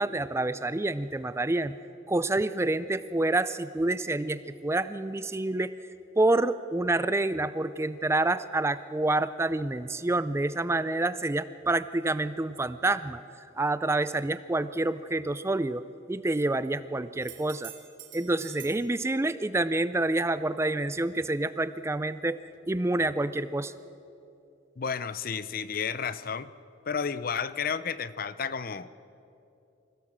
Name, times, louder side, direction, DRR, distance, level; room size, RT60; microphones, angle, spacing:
voice 1, 0.0-1.7 2.1-5.7 6.2-13.2 13.6-17.7 18.1-22.4 22.7-23.7, right 2 dB, 15° right, 14 dB, 0.4 m, -28 dB
sound 1, 17.2-18.9 22.5-22.6, right 11 dB, 85° right, 2.7 m, -46 dB
voice 2, 24.8-26.5 26.9-28.9, left 6 dB, 50° left, 15 dB, 0.6 m, -32 dB
25.5 x 16.5 x 7.4 m, 2.7 s
head